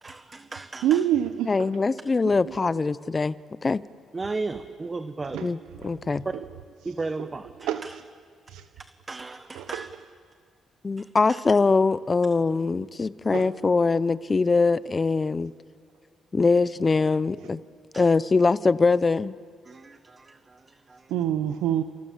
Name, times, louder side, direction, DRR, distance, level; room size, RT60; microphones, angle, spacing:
voice 1, 0.0-1.0 4.1-5.5 6.2-6.3 6.8-8.0 8.8-9.9 11.0-11.4 17.9-18.1 19.6-21.1, right 3 dB, 25° right, 9 dB, 1.2 m, -35 dB
voice 2, 0.8-1.7 2.4-2.5 5.3-5.5 5.8-6.1 7.2-7.3 7.6-7.8 8.5-8.6 9.5-9.8 13.3-13.5 17.5-17.6 21.1-21.8, right 11 dB, 90° right, 10 dB, 0.9 m, -26 dB
voice 3, 1.5-3.4 3.6-3.8 5.4-5.6 5.8-6.2 10.8-15.5 16.3-17.6 17.9-19.4, left 4 dB, 30° left, 17 dB, 0.8 m, -22 dB
28.0 x 27.0 x 7.4 m, 2.1 s
cardioid pair, 90°, 0 cm